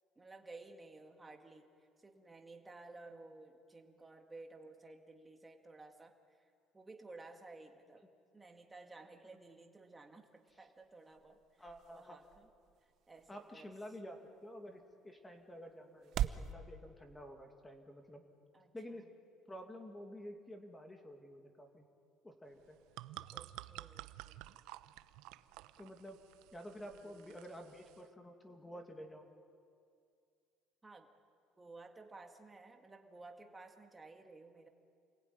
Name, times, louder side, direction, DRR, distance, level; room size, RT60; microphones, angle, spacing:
voice 1, 0.2-8.1 8.3-12.5 12.8-14.0 18.5-19.1 23.3-24.4 26.8-27.5 30.8-31.1 31.6-34.7, right 3 dB, 10° right, 4 dB, 1.9 m, -55 dB
sound 1, 10.3-16.5, right 11 dB, 45° right, 0.8 m, -45 dB
voice 2, 11.6-12.2 13.3-18.2 18.7-19.1 19.5-21.8 22.2-22.8 25.8-26.2 26.5-29.3, equal, 10° left, 4 dB, 2.3 m, -50 dB
sound 2, 22.6-28.1, right 16 dB, 80° right, 0.7 m, -52 dB
29.5 x 21.0 x 9.6 m, 2.4 s
cardioid pair, 175°, 0 cm